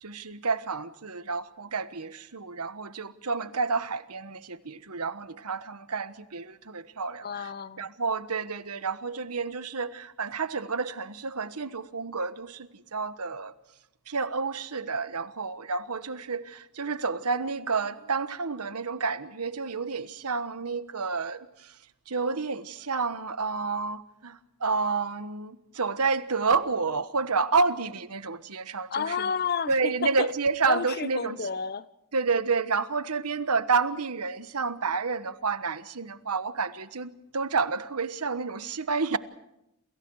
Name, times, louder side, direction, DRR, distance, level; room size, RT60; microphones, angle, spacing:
voice 1, 0.0-7.5 7.8-13.5 14.1-21.7 22.1-29.1 29.7-31.4 32.1-39.2, right 4 dB, 85° right, 1.3 m, -30 dB
voice 2, 7.2-7.9 28.9-30.3 30.7-31.9, left 6 dB, 45° left, 0.9 m, -31 dB
29.0 x 27.5 x 4.8 m
head